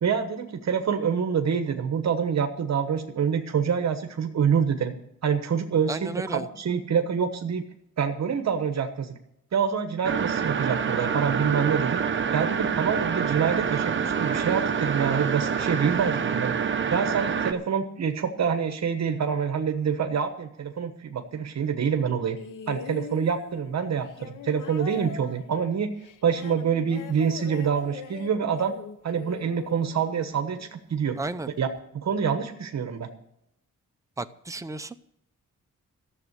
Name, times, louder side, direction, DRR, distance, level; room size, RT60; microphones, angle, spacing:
voice 1, 0.0-4.9 5.2-7.6 8.0-9.2 9.5-12.0 12.3-16.5 16.9-22.4 22.7-25.9 26.2-28.7 29.0-31.2 31.6-31.7 31.9-33.1, right 7 dB, 60° right, 7 dB, 1.1 m, -26 dB
voice 2, 5.9-6.5 31.2-31.5 34.2-35.0, right 2 dB, 10° right, 9 dB, 0.6 m, -33 dB
sound 1, 10.0-17.5, right 7 dB, 40° right, 0.9 m, -26 dB
sound 2, 22.4-30.8 31.8-31.9, left 6 dB, 80° left, 1.0 m, -42 dB
14.0 x 7.3 x 8.1 m, 0.78 s
wide cardioid pair, 175°, 31 cm